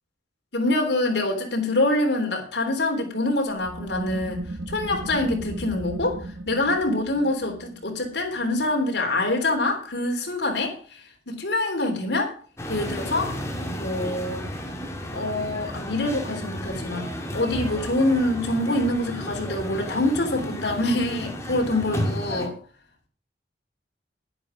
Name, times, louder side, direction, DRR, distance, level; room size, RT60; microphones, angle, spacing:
voice 1, 0.5-6.2 6.5-11.0 11.3-12.3 12.7-13.4 13.8-14.5 15.1-22.5, left 2 dB, 75° left, 3 dB, 3.4 m, -25 dB
sound 1, 3.5-8.8, right 1 dB, 90° right, 1.6 m, -36 dB
sound 2, 12.6-22.5, equal, 15° left, 2.2 m, -33 dB
11.0 x 11.0 x 5.1 m, 0.42 s
head